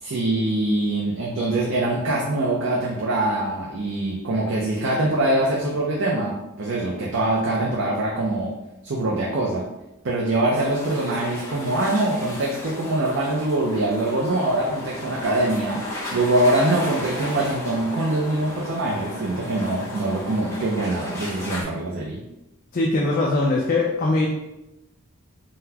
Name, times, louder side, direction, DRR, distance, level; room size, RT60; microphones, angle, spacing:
voice 1, 0.0-8.5 8.8-9.6 10.0-22.2, right 1 dB, 60° right, -3 dB, 0.5 m, -23 dB
sound 1, 10.6-21.6, left 1 dB, 15° left, 0.7 m, -35 dB
voice 2, 22.7-24.3, left 2 dB, 40° left, -2 dB, 0.3 m, -21 dB
3.9 x 2.2 x 2.8 m, 0.93 s
head